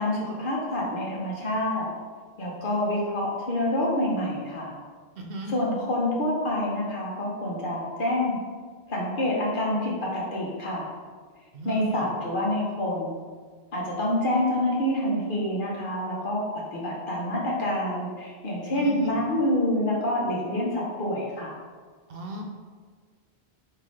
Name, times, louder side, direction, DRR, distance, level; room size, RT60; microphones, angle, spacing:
voice 1, 0.0-1.9 2.4-4.7 5.5-8.4 8.9-10.9 11.6-13.2 13.7-16.4 16.7-21.5, left 1 dB, 55° left, -3 dB, 1.1 m, -27 dB
voice 2, 5.2-5.6 11.5-12.1 18.7-19.1 22.1-22.4, equal, 70° right, 1 dB, 0.8 m, -35 dB
5.6 x 2.8 x 3.1 m, 1.5 s
omnidirectional pair, 1.1 m